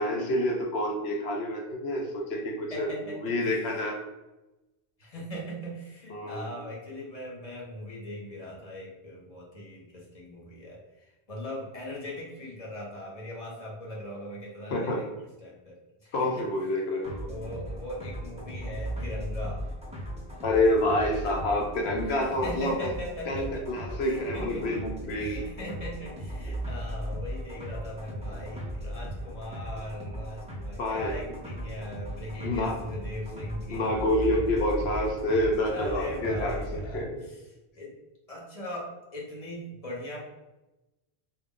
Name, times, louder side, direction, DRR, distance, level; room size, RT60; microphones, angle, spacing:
voice 1, 0.0-4.0 6.1-6.5 14.7-15.0 16.1-17.3 20.4-22.9 23.3-25.4 30.8-31.2 32.4-32.8 33.7-36.6 36.9-37.2, left 1 dB, 85° left, 1 dB, 0.9 m, -28 dB
voice 2, 2.7-3.3 5.0-16.5 17.3-19.6 22.0-24.7 25.0-33.9 35.6-37.9 38.3-40.2, equal, 40° left, -4 dB, 0.7 m, -40 dB
sound 1, 17.0-36.9, equal, 10° right, 0.3 m, -37 dB
2.3 x 2.1 x 3.6 m, 1.0 s
omnidirectional pair, 1.0 m